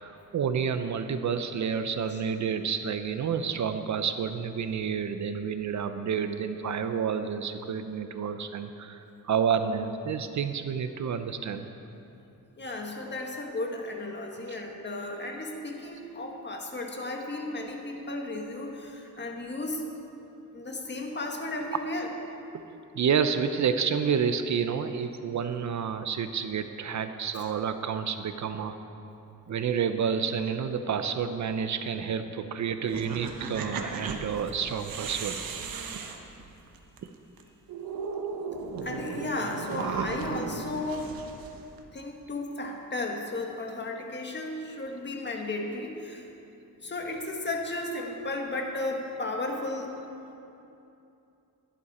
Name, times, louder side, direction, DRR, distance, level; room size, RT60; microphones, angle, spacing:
voice 1, 0.0-11.6 14.5-14.6 22.9-28.8 29.5-35.4 35.9-36.0, right 7 dB, 50° right, 9 dB, 0.7 m, -29 dB
voice 2, 12.6-19.9 20.5-22.1 38.5-41.2 41.9-46.3 46.8-49.9, left 2 dB, 30° left, 1 dB, 1.7 m, -34 dB
sound 1, 32.9-37.0 37.4-37.5 37.7-41.8, right 5 dB, 70° right, 1.2 m, -36 dB
16.0 x 11.5 x 4.3 m, 2.8 s
cardioid pair, 105°, 36 cm